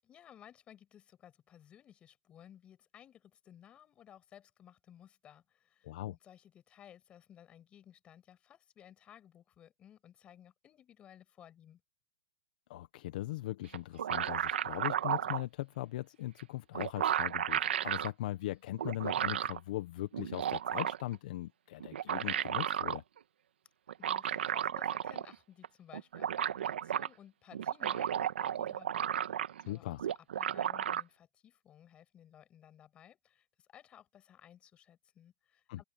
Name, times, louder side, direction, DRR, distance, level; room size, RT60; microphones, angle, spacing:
voice 1, 0.0-11.8 24.0-29.4 29.7-30.0 30.4-35.8, left 10 dB, 20° left, 6.0 m, -58 dB
voice 2, 5.8-6.1 12.7-23.0 29.7-30.0 35.7-35.8, left 15 dB, 50° left, 1.2 m, -39 dB
sound 1, 13.7-15.4 16.4-16.5 16.7-18.1 18.8-19.6 20.1-21.2 21.8-23.0 23.9-25.3 25.6-25.7 25.9-27.1 27.5-29.7 30.0-31.0, right 9 dB, 75° right, 1.6 m, -33 dB
open air
hypercardioid pair, 155°, 6 cm